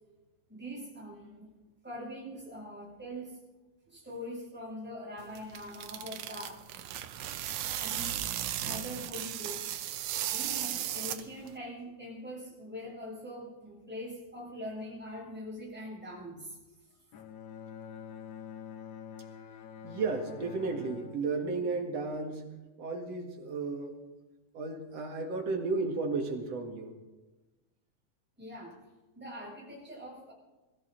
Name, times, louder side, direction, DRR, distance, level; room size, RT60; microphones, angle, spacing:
voice 1, 0.5-1.5 1.8-3.4 3.9-6.6 7.8-8.2 8.6-9.8 10.3-16.6 28.4-28.8 29.2-30.3, equal, 5° right, -6 dB, 7.3 m, -43 dB
sound 1, 5.2-11.6, right 12 dB, 70° right, 2.0 m, -36 dB
Bowed string instrument, 17.1-22.6, left 7 dB, 65° left, 1.8 m, -47 dB
voice 2, 19.8-22.4 22.8-23.9 24.5-26.9, right 3 dB, 55° right, 3 dB, 2.8 m, -33 dB
23.0 x 14.0 x 4.0 m, 1.1 s
omnidirectional pair, 3.9 m